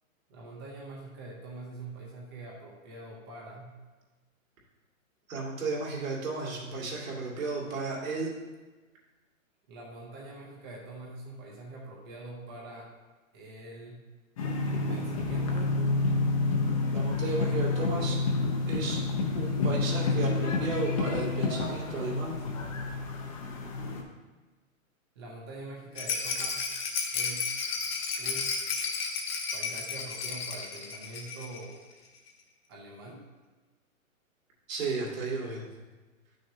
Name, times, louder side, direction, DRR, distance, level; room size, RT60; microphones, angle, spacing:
voice 1, 0.3-3.7 9.7-12.9 13.3-14.0 14.9-15.8 25.2-26.7 27.1-27.5 28.2-28.5 29.5-31.8 32.7-33.2, right 2 dB, 20° right, -3 dB, 0.7 m, -44 dB
voice 2, 5.3-8.3 16.9-18.2 18.7-19.0 19.3-22.4 34.7-35.7, right 3 dB, 65° right, -3 dB, 2.5 m, -34 dB
sound 1, 14.4-24.0, left 3 dB, 25° left, 0.7 m, -29 dB
Rattle, 25.9-31.6 31.9-32.0 32.3-32.4, left 5 dB, 45° left, 1.2 m, -33 dB
10.0 x 6.3 x 2.8 m, 1.2 s
hypercardioid pair, 160°, 42 cm